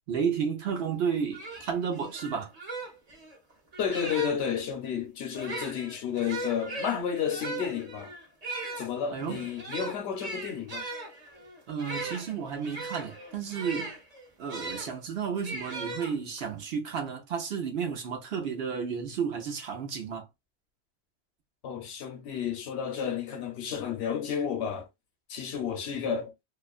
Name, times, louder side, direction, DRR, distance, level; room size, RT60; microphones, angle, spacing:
voice 1, 0.1-2.5 9.1-9.4 11.7-13.9 14.4-20.3 25.9-26.1, right 6 dB, 65° right, 0.8 m, -32 dB
sound 1, 0.9-1.0 1.3-4.6 5.3-14.9 15.4-16.5, right 2 dB, 40° right, 0.8 m, -39 dB
voice 2, 3.8-8.1 8.8-10.9 21.6-24.9 25.3-26.3, left 7 dB, 75° left, 0.9 m, -31 dB
2.4 x 2.2 x 2.4 m
omnidirectional pair, 1.1 m